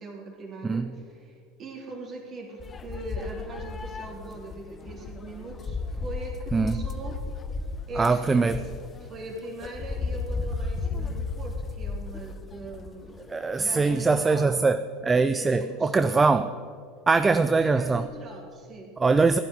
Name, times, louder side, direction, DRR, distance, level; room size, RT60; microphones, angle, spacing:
voice 1, 0.0-7.2 7.9-8.5 9.0-13.2 13.5-14.5 15.4-16.4 17.6-18.9, right 2 dB, 40° right, 0 dB, 3.2 m, -40 dB
sound 1, 2.6-14.2, left 4 dB, 25° left, 0.9 m, -34 dB
voice 2, 8.0-8.6 13.3-14.8 15.0-16.5 17.1-18.1 19.0-19.4, right 4 dB, 20° right, 11 dB, 0.5 m, -22 dB
16.0 x 11.0 x 4.1 m, 2.3 s
figure-of-eight pair, 75°, 0 cm